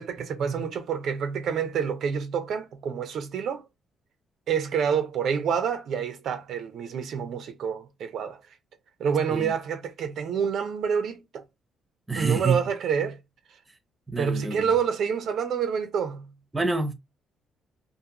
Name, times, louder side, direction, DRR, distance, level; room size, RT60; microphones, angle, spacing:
voice 1, 0.0-3.6 4.5-8.4 9.0-11.4 12.2-13.2 14.2-16.3, right 7 dB, 70° right, 0.5 m, -28 dB
voice 2, 12.1-12.6 14.1-14.6 16.5-16.9, right 3 dB, 15° right, 0.7 m, -26 dB
2.5 x 2.4 x 2.8 m
cardioid pair, 90°, 0 cm